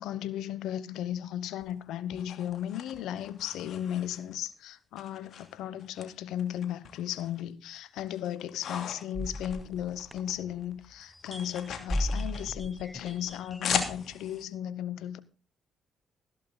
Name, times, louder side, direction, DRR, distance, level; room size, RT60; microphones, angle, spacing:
voice 1, 0.0-15.2, left 11 dB, 85° left, 1.1 m, -35 dB
sound 1, 1.6-4.5 5.0-6.1 6.4-7.4 7.8-10.4 10.6-14.4, left 7 dB, 65° left, 2.8 m, -38 dB
sound 2, 9.1-10.7 11.1-14.2, left 1 dB, 10° left, 0.6 m, -36 dB
14.5 x 11.5 x 4.0 m
supercardioid pair, 70°, 0 cm